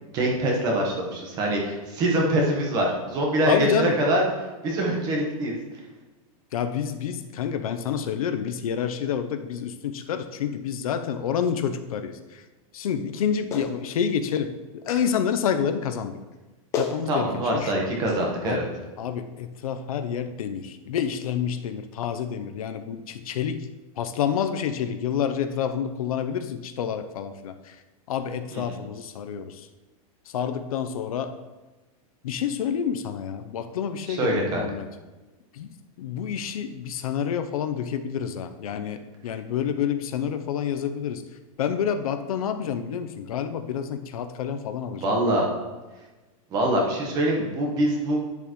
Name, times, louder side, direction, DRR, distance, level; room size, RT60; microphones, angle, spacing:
voice 1, 0.0-4.3 4.6-5.5 17.1-18.7 28.5-28.8 34.1-34.6 45.0-45.4 46.5-48.2, right 1 dB, 20° right, 0 dB, 1.2 m, -24 dB
voice 2, 3.5-3.9 6.5-12.4 12.7-16.2 16.8-17.7 18.4-18.6 19.0-23.6 24.0-27.7 28.1-29.6 30.3-31.3 32.2-34.9 35.5-41.2 41.6-45.1, left 8 dB, 70° left, 8 dB, 0.7 m, -28 dB
Clapping, 13.5-13.7 14.9-15.1 16.3-16.4 16.7-17.0 18.1-18.2, left 5 dB, 15° left, 0.7 m, -30 dB
10.5 x 6.9 x 3.1 m, 1.2 s
supercardioid pair, 175°, 19 cm